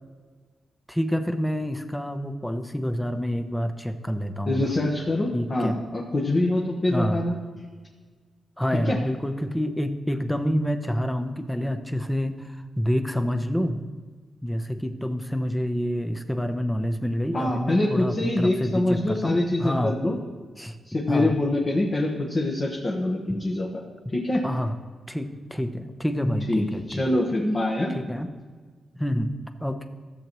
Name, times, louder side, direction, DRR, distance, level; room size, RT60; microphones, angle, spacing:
voice 1, 0.9-4.7 5.3-5.8 6.9-7.2 8.6-13.8 14.4-20.0 20.6-20.8 21.1-21.3 24.4-24.8 25.1-27.0 27.9-28.3 28.9-29.3 29.6-29.9, equal, 5° left, 8 dB, 0.7 m, -27 dB
voice 2, 4.4-7.4 8.8-9.0 17.3-20.2 20.8-23.8 24.1-24.4 26.5-27.9, left 1 dB, 35° left, -2 dB, 1.2 m, -25 dB
14.0 x 7.6 x 3.0 m, 1.5 s
cardioid pair, 105°, 0 cm